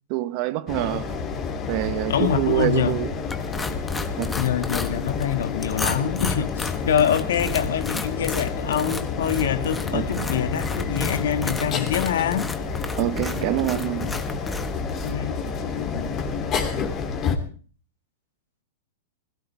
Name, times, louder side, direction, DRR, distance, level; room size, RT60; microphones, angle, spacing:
voice 1, 0.1-1.1 1.7-3.1 4.2-4.4 9.9-10.3 13.0-14.1, right 16 dB, 45° right, 1.1 m, -26 dB
sound 1, 0.7-17.4, left 5 dB, 25° left, 2.9 m, -29 dB
voice 2, 2.1-3.0 4.4-12.5 15.0-15.4, left 9 dB, 80° left, 1.8 m, -25 dB
sound 2, 3.3-15.2, left 3 dB, 10° left, 1.3 m, -33 dB
21.0 x 16.5 x 3.4 m
hypercardioid pair, 145°, 0 cm